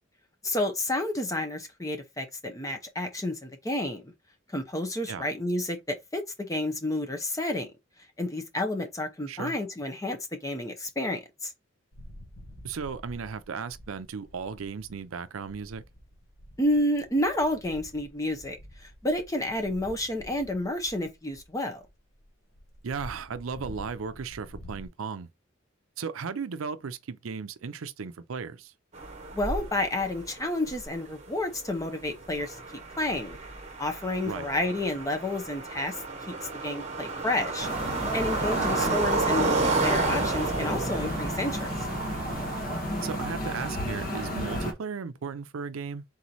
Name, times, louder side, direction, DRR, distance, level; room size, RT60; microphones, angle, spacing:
voice 1, 0.4-4.1 4.5-7.7 8.2-11.5 16.6-21.8 29.3-32.6 33.0-33.4 33.8-36.0 36.3-36.4 36.6-37.7 38.1-41.9, left 1 dB, 15° left, 0.7 m, -30 dB
sound 1, 11.9-15.0 15.3-24.9, equal, 70° left, 1.0 m, -48 dB
voice 2, 12.6-15.8 22.8-25.3 26.0-28.7 34.2-34.5 38.8-39.0 43.0-46.0, right 5 dB, 85° right, 0.5 m, -36 dB
sound 2, 28.9-43.2, right 3 dB, 35° right, 1.0 m, -32 dB
sound 3, 37.6-44.7, equal, 45° left, 1.2 m, -32 dB
3.9 x 3.0 x 4.0 m
head